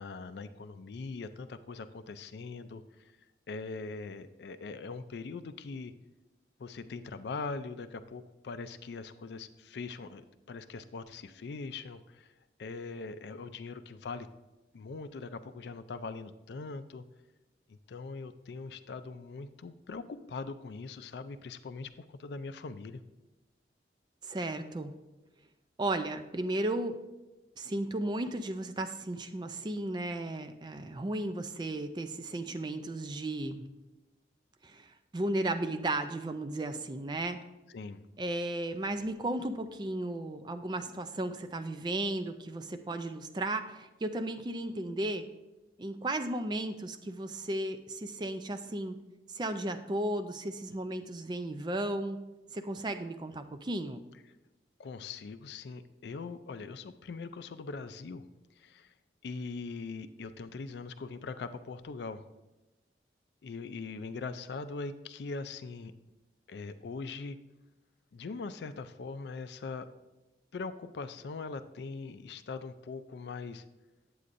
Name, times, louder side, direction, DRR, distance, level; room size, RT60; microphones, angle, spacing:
voice 1, 0.0-2.8 3.5-5.9 6.6-12.3 12.6-14.3 14.7-17.0 17.7-23.0 37.7-38.0 54.8-58.2 58.6-58.9 59.2-62.2 63.4-65.9 66.5-67.4 68.1-69.9 70.5-73.6, left 4 dB, 70° left, 11 dB, 0.4 m, -41 dB
voice 2, 24.2-24.9 25.8-27.0 27.6-33.6 34.6-37.4 38.2-45.3 45.8-49.0 49.3-52.2 52.5-54.0, right 1 dB, 25° right, 9 dB, 0.4 m, -34 dB
8.4 x 8.1 x 2.6 m, 1.0 s
head